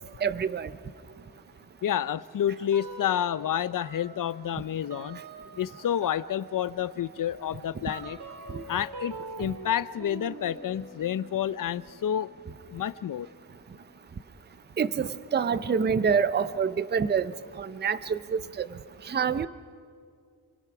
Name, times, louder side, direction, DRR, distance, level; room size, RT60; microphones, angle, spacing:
voice 1, 0.2-0.7 8.5-8.6 14.8-17.3 17.6-18.7 19.0-19.5, right 6 dB, 25° right, 15 dB, 0.5 m, -26 dB
voice 2, 1.8-5.2 5.6-8.2 8.7-12.3 12.7-13.3, left 10 dB, 55° left, 17 dB, 0.6 m, -29 dB
sound 1, 2.7-3.5 3.8-14.1, right 3 dB, 90° right, 3.0 m, -45 dB
29.0 x 23.0 x 6.0 m, 2.2 s
wide cardioid pair, 175°, 38 cm